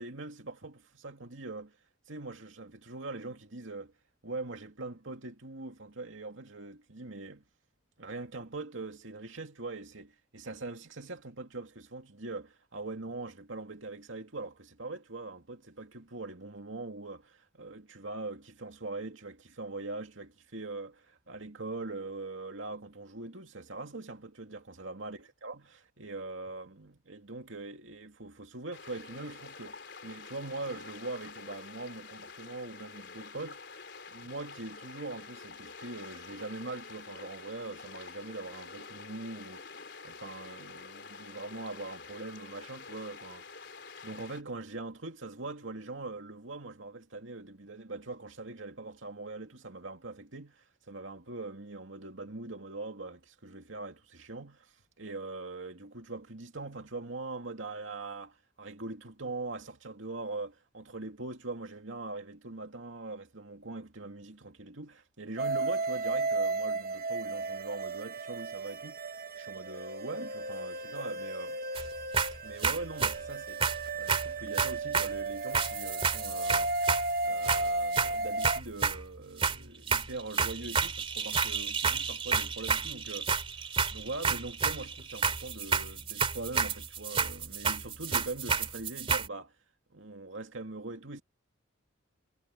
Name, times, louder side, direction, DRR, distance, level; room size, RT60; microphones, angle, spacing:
voice 1, 0.0-1.8 2.1-3.9 4.2-7.4 8.0-33.6 34.1-39.6 40.0-43.4 44.0-69.0 69.4-71.6 72.4-73.6 73.9-76.7 77.2-89.5 89.9-91.2, right 2 dB, 80° right, 2.5 m, -42 dB
sound 1, 28.7-44.4, left 4 dB, 60° left, 4.2 m, -48 dB
sound 2, 65.4-78.6, right 2 dB, 45° right, 1.4 m, -34 dB
sound 3, 71.7-71.9 72.1-73.2 73.6-75.2 75.5-77.1 77.4-79.0 79.4-79.6 79.9-89.3, right 5 dB, 30° right, 3.0 m, -30 dB
head